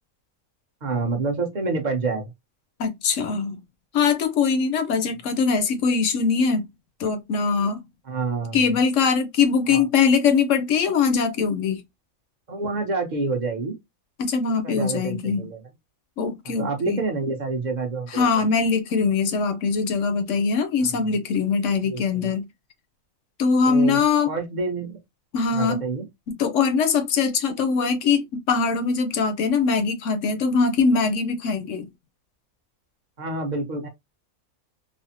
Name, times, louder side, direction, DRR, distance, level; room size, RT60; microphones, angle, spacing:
voice 1, 0.8-2.3 8.0-8.6 9.7-9.9 12.5-13.8 14.6-15.6 16.6-18.3 20.9-21.0 21.8-22.3 23.7-25.0 25.5-26.1 33.2-33.9, right 3 dB, 40° right, 0.8 m, -28 dB
voice 2, 2.8-3.6 3.9-6.6 7.0-7.8 8.5-11.8 14.2-15.5 16.2-17.0 18.1-22.5 23.4-24.3 25.3-25.8 26.4-31.9, left 5 dB, 65° left, 0.9 m, -22 dB
3.3 x 2.0 x 2.7 m
omnidirectional pair, 1.5 m